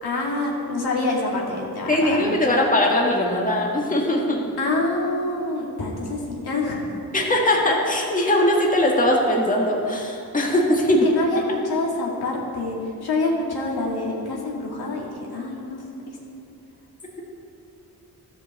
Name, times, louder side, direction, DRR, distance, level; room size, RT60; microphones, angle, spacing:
voice 1, 0.0-2.5 4.6-7.0 10.8-16.2, left 2 dB, 70° left, -3 dB, 2.1 m, -27 dB
voice 2, 1.9-4.4 7.1-11.0, left 1 dB, 20° left, -2 dB, 1.7 m, -20 dB
13.0 x 5.3 x 7.1 m, 2.7 s
cardioid pair, 75°, 39 cm